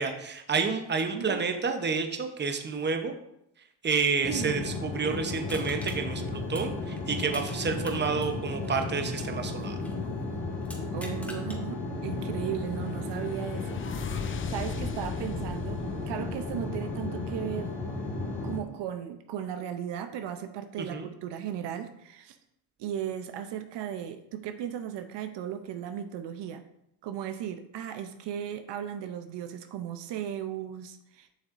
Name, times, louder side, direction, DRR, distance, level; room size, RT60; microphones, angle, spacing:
voice 1, 0.0-3.1 3.8-9.8 20.8-21.1, right 5 dB, 25° right, 6 dB, 0.8 m, -29 dB
voice 2, 1.1-1.4 4.2-4.6 10.9-17.8 18.4-22.4 22.8-26.6 27.0-31.3, right 10 dB, 70° right, 9 dB, 0.7 m, -36 dB
sound 1, 4.2-18.6, left 3 dB, 55° left, 2.0 m, -34 dB
Crushing, 5.5-7.6 7.8-10.0 10.6-11.6 12.1-12.2, equal, 5° left, 1.6 m, -46 dB
sound 2, 12.1-17.1, left 6 dB, 30° left, 0.4 m, -41 dB
7.5 x 6.1 x 2.5 m, 0.79 s
cardioid pair, 85°, 44 cm